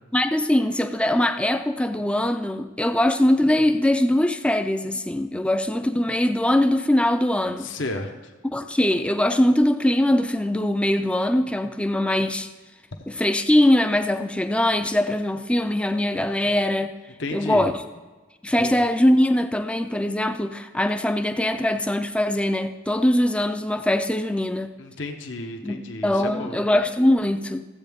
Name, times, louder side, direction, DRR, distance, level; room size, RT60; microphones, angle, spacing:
voice 1, 0.1-7.7 8.4-12.5 13.1-16.9 17.3-17.8 18.4-24.7 25.6-27.6, left 1 dB, 5° left, 8 dB, 0.4 m, -22 dB
voice 2, 7.6-8.1 17.2-17.6 18.6-18.8 24.8-26.6, left 2 dB, 65° left, 4 dB, 0.9 m, -32 dB
14.5 x 8.3 x 3.5 m, 1.3 s
head